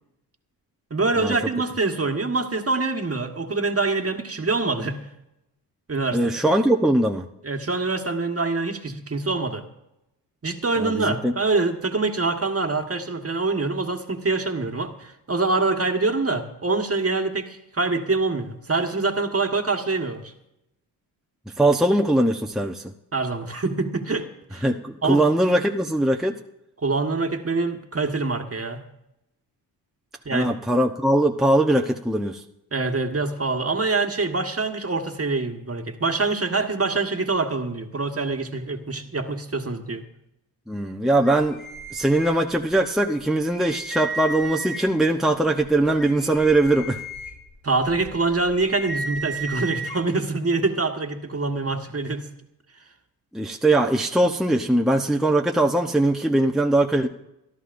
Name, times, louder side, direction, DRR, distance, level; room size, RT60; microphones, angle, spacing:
voice 1, 0.9-5.0 5.9-6.2 7.4-9.6 10.4-20.3 23.1-24.6 25.0-25.3 26.8-28.8 30.2-30.5 32.7-40.0 47.6-52.2, right 3 dB, 30° right, 5 dB, 1.5 m, -25 dB
voice 2, 6.1-7.2 10.8-11.3 21.6-22.8 24.6-26.3 30.3-32.4 40.7-41.6 41.9-47.0 53.3-57.1, right 1 dB, ahead, 2 dB, 0.9 m, -21 dB
sound 1, 41.2-42.8 43.2-43.3 43.5-45.1 45.6-50.0, right 2 dB, 50° left, 4.9 m, -34 dB
28.5 x 11.0 x 2.6 m, 0.86 s
supercardioid pair, 55°, 44 cm